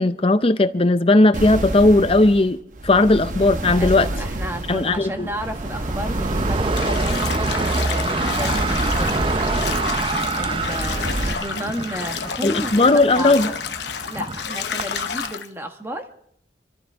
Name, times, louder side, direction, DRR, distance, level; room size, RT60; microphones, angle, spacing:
voice 1, 0.0-2.6 2.8-4.1 4.7-5.3 12.4-13.5, left 2 dB, 30° left, 12 dB, 0.6 m, -17 dB
sound 1, 1.3-11.3, right 1 dB, 45° right, 1.0 m, -29 dB
voice 2, 3.8-9.6 10.3-13.6 14.0-16.1, equal, 15° right, 5 dB, 1.3 m, -33 dB
sound 2, 3.8-15.3, right 3 dB, 30° right, 0.5 m, -27 dB
Bathtub (filling or washing), 6.7-15.5, left 7 dB, 70° left, 0.9 m, -30 dB
26.5 x 14.0 x 3.5 m, 0.69 s
head